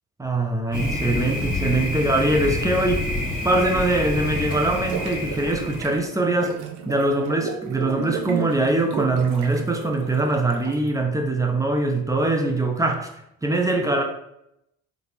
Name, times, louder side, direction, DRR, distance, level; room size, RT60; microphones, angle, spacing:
voice 1, 0.2-3.1 3.4-13.1 13.4-14.0, right 2 dB, 5° right, 3 dB, 0.7 m, -22 dB
Thunder, 0.7-6.0, left 1 dB, 20° left, 1.3 m, -27 dB
sound 1, 4.1-10.9, right 8 dB, 60° right, 0.6 m, -34 dB
3.7 x 3.5 x 3.0 m, 0.81 s
figure-of-eight pair, 45°, 45 cm